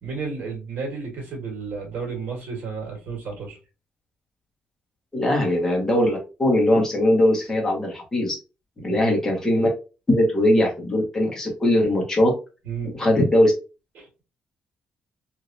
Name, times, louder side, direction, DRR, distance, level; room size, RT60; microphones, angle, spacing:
voice 1, 0.0-3.6 8.8-9.0 12.6-12.9 14.0-14.1, right 5 dB, 65° right, -1 dB, 1.7 m, -32 dB
voice 2, 5.1-8.4 8.8-9.7 10.1-12.3 13.0-13.5, left 1 dB, 15° left, -1 dB, 1.1 m, -20 dB
3.1 x 2.7 x 2.6 m, 0.30 s
cardioid pair, 150°, 3 cm